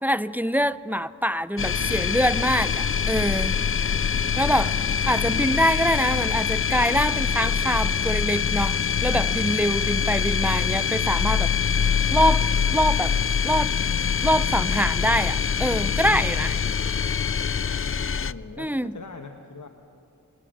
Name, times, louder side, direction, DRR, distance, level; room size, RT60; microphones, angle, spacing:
voice 1, 0.0-3.6 4.4-4.7 5.1-11.5 12.1-13.1 13.4-13.7 14.2-16.6 18.6-18.9, equal, 5° right, 15 dB, 0.5 m, -24 dB
sound 1, 1.6-18.3, left 7 dB, 45° left, 0.4 m, -24 dB
voice 2, 5.1-5.7 10.0-10.1 17.2-17.3 18.2-19.7, left 4 dB, 65° left, 5 dB, 1.2 m, -40 dB
25.5 x 20.0 x 6.5 m, 2.6 s
wide cardioid pair, 55°, 31 cm